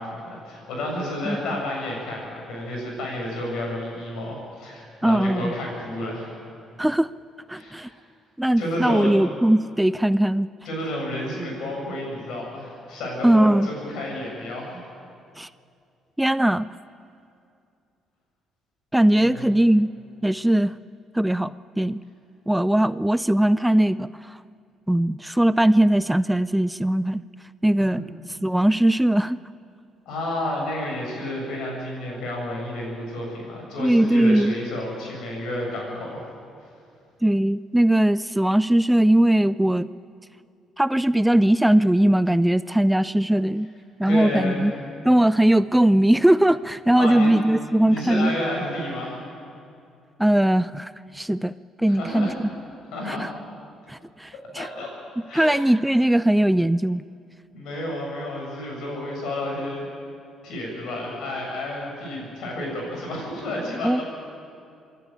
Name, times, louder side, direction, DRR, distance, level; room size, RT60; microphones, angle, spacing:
voice 1, 0.0-6.3 7.5-7.9 8.6-9.1 10.6-14.8 19.2-19.5 27.9-28.0 30.1-36.2 44.0-44.7 47.0-47.5 47.9-49.2 51.9-52.3 52.9-53.3 54.6-54.9 55.3-55.6 57.5-59.9 60.4-64.0, left 1 dB, 70° left, -1 dB, 7.0 m, -31 dB
voice 2, 5.0-5.5 6.8-7.1 7.5-7.9 8.4-10.5 13.2-13.7 15.4-15.5 16.2-16.7 18.9-19.9 20.2-20.7 21.1-22.0 22.5-24.4 24.9-27.2 27.6-28.0 28.4-29.4 33.8-34.5 37.2-39.9 40.8-43.7 44.0-44.7 45.0-48.3 50.2-51.5 51.8-52.3 53.0-53.3 53.9-54.7 55.3-57.0 63.8-64.0, right 1 dB, 5° right, 16 dB, 0.4 m, -20 dB
26.0 x 11.5 x 8.9 m, 2.5 s
hypercardioid pair, 60°, 0 cm